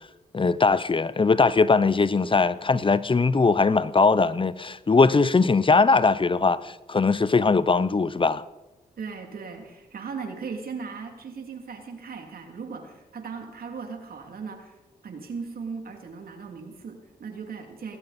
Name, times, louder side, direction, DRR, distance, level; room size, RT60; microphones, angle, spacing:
voice 1, 0.3-8.4, left 4 dB, 35° left, 0.7 m, -20 dB
voice 2, 9.0-14.8 15.0-18.0, right 5 dB, 70° right, 3.0 m, -38 dB
19.5 x 16.0 x 4.3 m
cardioid pair, 60°, 16 cm